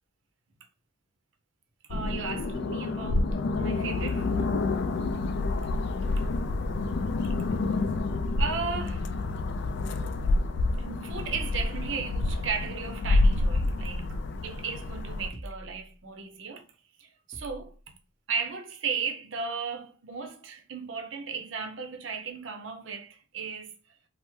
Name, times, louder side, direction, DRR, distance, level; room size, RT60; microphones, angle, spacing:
sound 1, 1.9-15.3, left 2 dB, 60° left, 0.3 m, -28 dB
voice 1, 1.9-4.5 6.2-6.3 8.4-9.1 10.8-16.7 17.0-17.9 18.3-23.7, right 5 dB, 70° right, 0.6 m, -36 dB
sound 2, 15.3-16.0 17.3-17.8, equal, 35° left, 0.8 m, -44 dB
3.3 x 2.0 x 3.0 m
head